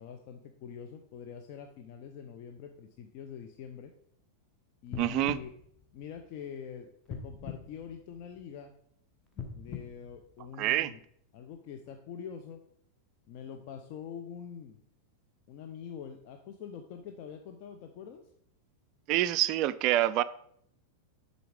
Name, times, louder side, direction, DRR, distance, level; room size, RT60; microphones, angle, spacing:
voice 1, 0.0-3.9 4.8-5.5 5.9-8.7 9.5-11.0 11.3-12.6 13.3-14.8 15.5-18.3, left 8 dB, 45° left, 0.6 m, -45 dB
sound 1, 4.9-6.5 7.1-8.6 9.3-11.0 11.5-11.6, left 6 dB, 20° left, 1.2 m, -44 dB
voice 2, 5.0-5.4 10.6-10.9 19.1-20.2, right 14 dB, 40° right, 0.3 m, -26 dB
7.7 x 4.0 x 5.0 m
figure-of-eight pair, 90°, 0 cm